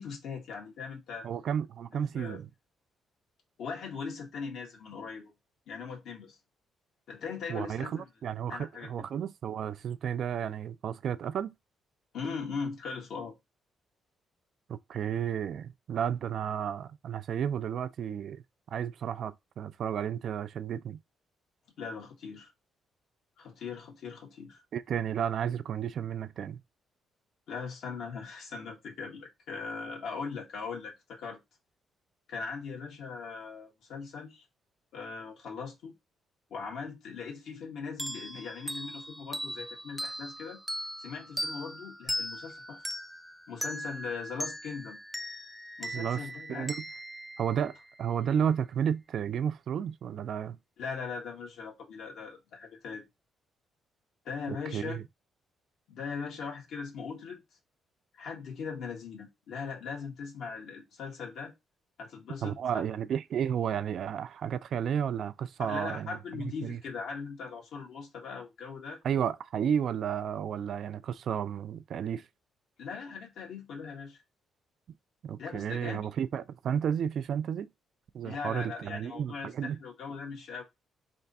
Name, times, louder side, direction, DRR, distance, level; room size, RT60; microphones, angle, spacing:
voice 1, 0.0-1.3 1.9-2.4 3.6-5.3 5.7-6.4 7.1-8.0 8.5-8.9 12.1-13.3 21.8-22.5 23.4-24.6 27.5-31.4 32.3-34.4 34.9-35.9 36.5-40.6 41.0-42.8 43.5-45.0 45.8-46.7 50.8-53.0 54.2-55.0 55.9-57.4 58.1-61.5 62.0-62.8 65.6-69.0 72.8-74.2 75.4-76.1 78.2-80.6, left 5 dB, 75° left, 1.5 m, -40 dB
voice 2, 1.2-2.5 7.5-11.5 14.7-18.4 18.7-21.0 24.7-26.6 45.9-46.2 46.5-46.8 47.4-50.6 54.5-55.0 62.4-66.8 69.0-72.2 75.2-77.7 78.1-79.8, right 8 dB, 65° right, 0.3 m, -32 dB
sound 1, 38.0-48.3, equal, 5° right, 0.5 m, -39 dB
3.4 x 2.6 x 4.0 m
cardioid pair, 90°, 0 cm